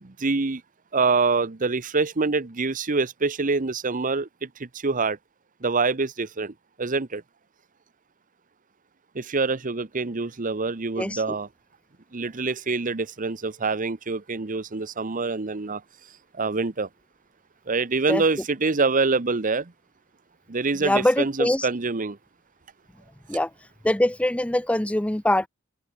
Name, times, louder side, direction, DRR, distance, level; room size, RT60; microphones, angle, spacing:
voice 1, 0.0-0.6 0.9-5.2 5.6-7.2 9.1-11.5 12.1-15.8 16.3-16.9 17.7-19.7 20.5-22.2, right 4 dB, 40° right, 0.9 m, -25 dB
voice 2, 20.8-21.7 23.3-23.5 23.8-25.5, left 1 dB, 5° left, 0.5 m, -23 dB
head